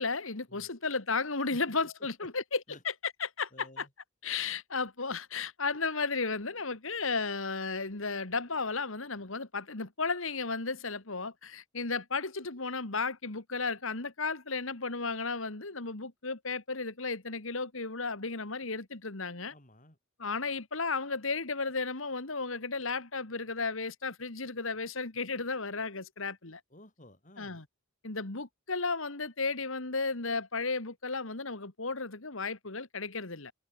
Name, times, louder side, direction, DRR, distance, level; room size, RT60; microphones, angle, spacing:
voice 1, 0.0-2.6 3.2-3.9 4.2-19.5 20.2-26.6 27.4-27.6 28.0-33.5, left 4 dB, 70° left, 2.2 m, -34 dB
voice 2, 3.5-3.9 19.5-20.0 26.7-27.6, left 1 dB, 35° left, 5.7 m, -54 dB
head